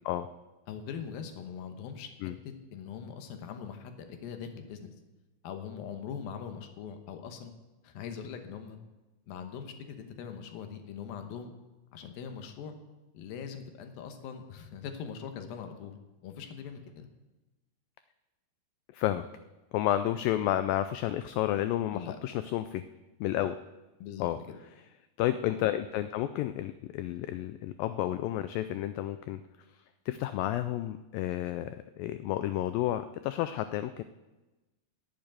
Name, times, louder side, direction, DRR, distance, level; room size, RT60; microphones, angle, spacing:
voice 1, 0.7-4.9 5.4-7.5 7.8-8.8 9.3-11.5 11.9-12.8 13.1-16.0 16.2-17.1 21.9-22.2 24.0-24.6, left 7 dB, 75° left, 6 dB, 2.7 m, -42 dB
voice 2, 18.9-19.3 19.7-22.8 23.2-23.6 24.2-24.4 25.2-29.4 30.1-34.0, left 13 dB, 90° left, 11 dB, 2.0 m, -31 dB
11.0 x 7.8 x 8.9 m, 1.1 s
omnidirectional pair, 4.5 m